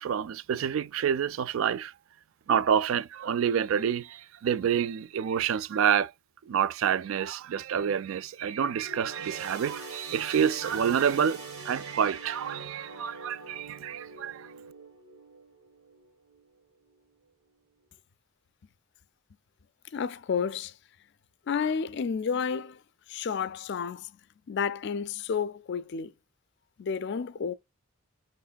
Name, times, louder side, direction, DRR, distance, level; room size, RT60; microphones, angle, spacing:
voice 1, 0.0-1.9 2.5-6.1 6.5-14.5, right 8 dB, 65° right, 0.3 m, -28 dB
sound 1, 8.8-16.5 16.9-17.1 18.0-18.1, right 3 dB, 85° right, 1.3 m, -44 dB
voice 2, 19.9-20.7 21.5-22.8 23.1-24.1 24.5-26.1 26.8-27.5, left 6 dB, 50° left, 0.4 m, -31 dB
5.7 x 3.0 x 2.2 m
head